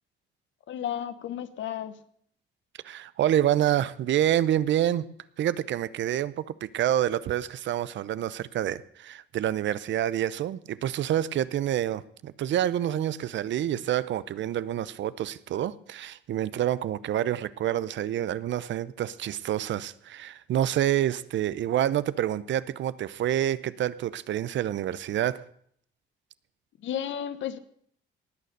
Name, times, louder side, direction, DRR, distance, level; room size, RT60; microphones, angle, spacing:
voice 1, 0.7-2.0 26.8-27.6, left 10 dB, 70° left, 13 dB, 1.0 m, -33 dB
voice 2, 2.8-5.0 5.4-25.4, right 11 dB, 70° right, 17 dB, 0.7 m, -27 dB
18.5 x 6.7 x 6.6 m, 0.66 s
cardioid pair, 90°, 20 cm